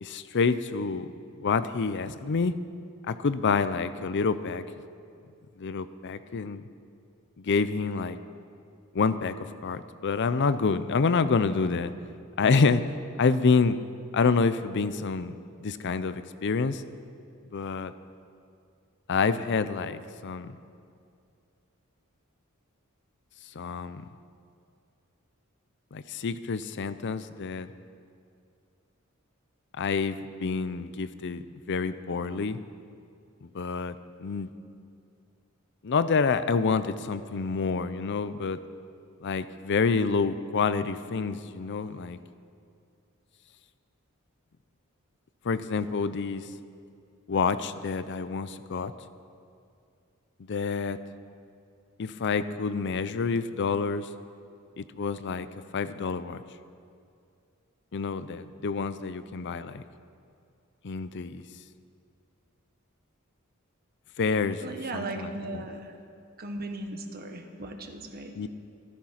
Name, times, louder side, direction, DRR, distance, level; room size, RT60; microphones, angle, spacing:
voice 1, 0.0-1.1 1.4-2.6 3.1-4.6 5.6-6.6 7.4-8.2 8.9-9.4 9.6-11.9 12.4-12.8 13.2-13.8 14.1-15.4 15.6-16.8 17.5-17.9 19.1-20.5 23.6-24.0 25.9-27.7 29.8-31.4 31.7-32.6 33.4-34.5 35.8-38.6 39.2-42.2 45.4-46.4 47.3-48.9 50.5-51.0 52.0-54.1 54.8-55.5 55.7-56.4 57.9-59.8 60.8-61.4 64.2-65.6 68.4-68.5, left 4 dB, 55° left, 13 dB, 0.5 m, -27 dB
voice 2, 64.6-65.9 66.4-68.4, right 2 dB, 45° right, 5 dB, 1.3 m, -37 dB
14.5 x 13.5 x 5.8 m, 2.4 s
head